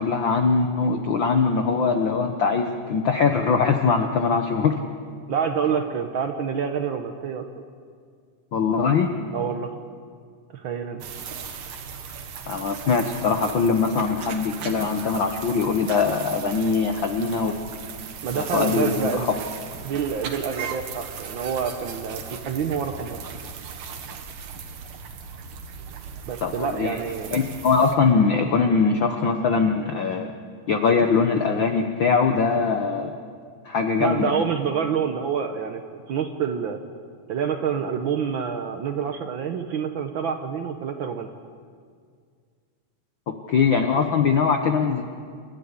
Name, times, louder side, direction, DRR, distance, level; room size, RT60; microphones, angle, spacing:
voice 1, 0.0-4.8 8.5-9.1 12.5-17.5 18.3-19.3 26.4-27.0 27.3-30.3 30.7-33.1 33.6-34.3 43.3-45.0, left 5 dB, 70° left, 5 dB, 1.1 m, -22 dB
voice 2, 5.3-7.4 9.3-9.7 10.5-11.0 18.2-19.3 19.8-23.2 26.3-27.3 34.0-36.8 37.3-41.3, right 7 dB, 85° right, 5 dB, 1.1 m, -27 dB
sound 1, 11.0-28.0, right 6 dB, 65° right, 2.7 m, -37 dB
28.0 x 13.0 x 9.8 m, 2.1 s
omnidirectional pair, 3.7 m